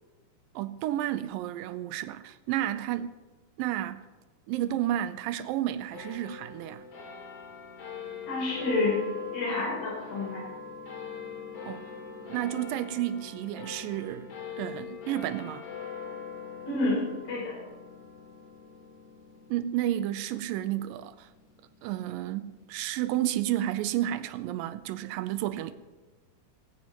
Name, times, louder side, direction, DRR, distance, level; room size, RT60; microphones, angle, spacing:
voice 1, 0.6-3.1 3.6-4.0 4.5-6.9 11.6-11.9 12.2-14.3 14.6-15.7 19.5-21.3 21.8-25.7, right 13 dB, 90° right, 2.3 m, -31 dB
sound 1, 5.9-22.6, left 6 dB, 45° left, 2.7 m, -42 dB
voice 2, 8.3-9.0 9.3-10.4 16.7-17.5, left 2 dB, 70° left, 5.1 m, -29 dB
18.5 x 15.5 x 3.0 m
omnidirectional pair, 4.0 m